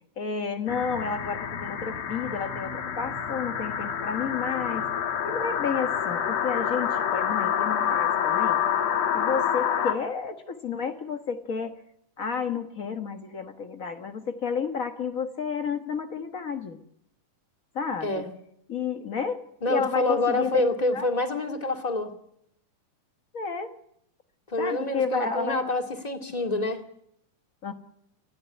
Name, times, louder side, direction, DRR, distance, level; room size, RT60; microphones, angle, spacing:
voice 1, 0.2-4.9 5.2-8.6 9.1-11.7 12.2-16.8 17.7-18.2 18.7-20.5 20.9-21.0 23.3-23.7 24.6-25.6 27.6-27.7, left 6 dB, 80° left, 6 dB, 0.7 m, -31 dB
sound 1, 0.7-9.9, left 9 dB, 60° left, 2.7 m, -27 dB
voice 2, 19.6-22.1 24.5-26.8, left 2 dB, 15° left, 5 dB, 1.8 m, -27 dB
29.0 x 11.0 x 9.7 m, 0.73 s
omnidirectional pair, 3.6 m